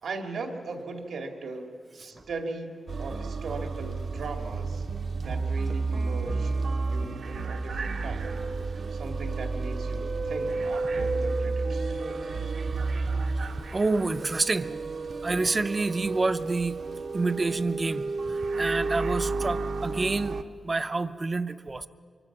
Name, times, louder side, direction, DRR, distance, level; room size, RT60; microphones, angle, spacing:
voice 1, 0.0-4.9 5.2-6.5 6.9-8.3 8.9-12.3, right 3 dB, 85° right, 4 dB, 2.3 m, -38 dB
sound 1, 2.9-20.4, right 3 dB, 60° right, 0.9 m, -31 dB
voice 2, 13.7-14.8 15.2-16.8 17.1-20.4 20.6-21.9, right 3 dB, 25° right, 12 dB, 0.6 m, -28 dB
24.5 x 23.5 x 6.0 m, 2.1 s
wide cardioid pair, 155°, 0 cm